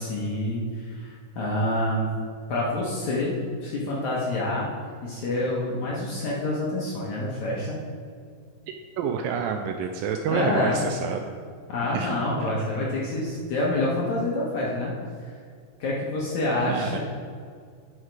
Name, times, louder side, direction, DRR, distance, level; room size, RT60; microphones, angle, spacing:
voice 1, 0.0-2.1 2.5-4.7 5.0-7.8 10.3-10.8 11.7-14.9 15.8-17.0, left 1 dB, 65° left, -4 dB, 2.1 m, -27 dB
voice 2, 9.0-11.2 11.9-12.1 12.4-12.5 16.6-17.0, right 7 dB, 80° right, 5 dB, 2.1 m, -28 dB
9.1 x 6.5 x 4.7 m, 2.1 s
omnidirectional pair, 4.4 m